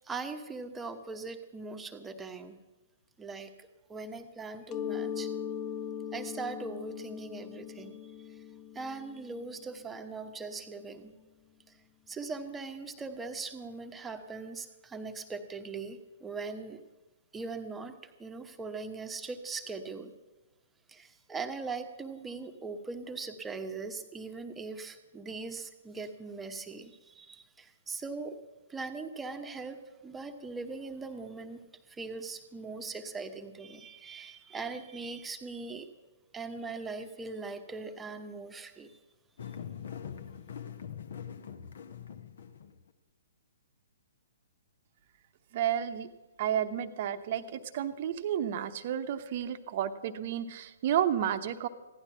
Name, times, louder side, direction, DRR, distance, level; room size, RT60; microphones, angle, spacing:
voice 1, 0.0-2.6 3.2-5.3 6.1-8.0 8.7-11.1 12.1-16.8 17.3-20.1 20.9-28.4 28.7-35.9 36.3-39.0, right 4 dB, 10° right, 7 dB, 1.0 m, -40 dB
Mallet percussion, 4.7-10.2, left 8 dB, 25° left, 0.4 m, -40 dB
sound 1, 39.4-42.9, left 8 dB, 55° left, 0.9 m, -43 dB
voice 2, 45.5-46.1 46.4-51.7, right 10 dB, 40° right, 11 dB, 0.8 m, -31 dB
16.0 x 11.5 x 5.8 m, 1.1 s
figure-of-eight pair, 120°, 0 cm